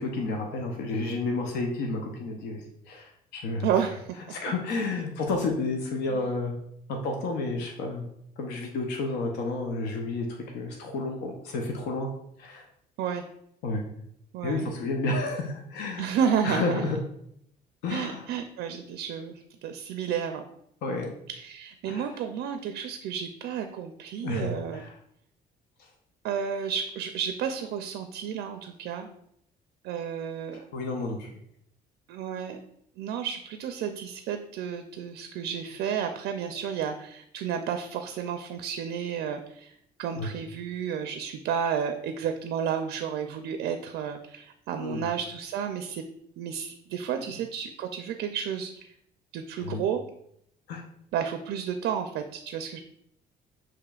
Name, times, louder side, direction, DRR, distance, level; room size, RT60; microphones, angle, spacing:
voice 1, 0.0-3.7 4.3-6.5 6.9-8.0 8.4-12.1 12.4-12.6 13.6-13.8 14.4-16.1 16.4-17.0 17.8-18.2 20.8-21.1 21.8-22.2 24.2-24.9 30.7-31.3 40.2-40.3 44.8-45.1 49.6-49.8 50.7-50.8, left 3 dB, 80° left, 1 dB, 0.7 m, -31 dB
voice 2, 3.6-4.2 4.8-4.9 6.1-6.2 13.0-13.2 14.3-14.7 16.0-16.8 17.9-20.4 21.3-24.9 26.2-29.1 29.8-30.6 32.1-32.6 33.0-46.0 46.4-48.9 49.3-50.0 51.1-52.8, right 8 dB, 75° right, 7 dB, 0.4 m, -31 dB
6.7 x 3.0 x 2.3 m, 0.72 s
cardioid pair, 110°, 17 cm